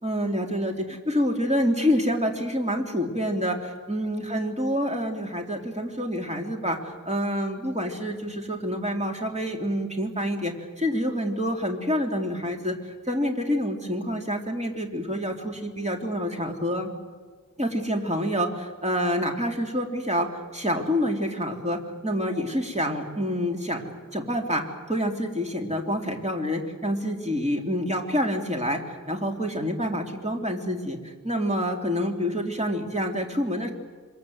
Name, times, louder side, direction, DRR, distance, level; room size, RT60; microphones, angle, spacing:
voice 1, 0.0-12.8 13.1-16.9 17.6-20.3 20.5-23.8 24.1-24.6 24.9-28.8 29.1-31.0 31.2-33.7, equal, 20° right, 2 dB, 3.5 m, -27 dB
27.0 x 25.0 x 8.0 m, 1.5 s
wide cardioid pair, 50°, 34 cm